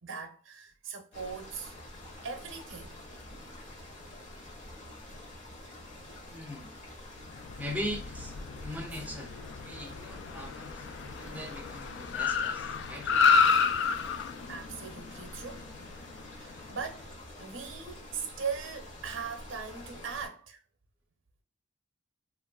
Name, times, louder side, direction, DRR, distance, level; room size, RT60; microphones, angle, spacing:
voice 1, 0.0-1.7 2.2-2.9 8.9-9.1 9.7-10.0 11.3-11.5 13.9-14.0 14.5-15.7 16.3-17.1 17.4-20.6, right 6 dB, 70° right, 0.6 m, -40 dB
sound 1, 1.1-20.3, left 1 dB, 35° left, 0.9 m, -47 dB
voice 2, 6.2-6.7 7.6-8.3 8.6-9.3 9.6-13.1, equal, 10° right, 0.4 m, -40 dB
Car, 7.3-16.8, left 5 dB, 60° left, 0.3 m, -30 dB
2.8 x 2.4 x 2.3 m
head